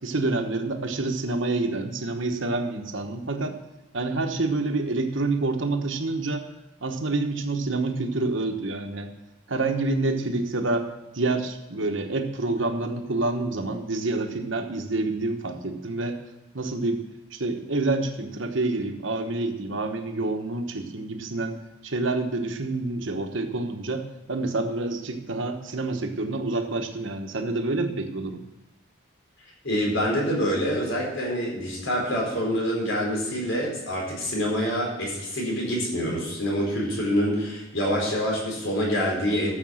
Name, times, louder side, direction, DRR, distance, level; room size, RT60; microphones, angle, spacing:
voice 1, 0.0-3.6 3.9-6.4 6.8-9.1 9.5-16.2 16.5-17.0 17.3-21.6 21.8-28.4, right 2 dB, 65° right, 5 dB, 1.2 m, -27 dB
voice 2, 29.6-39.5, equal, 65° left, -2 dB, 4.5 m, -26 dB
13.5 x 6.9 x 6.4 m, 0.98 s
head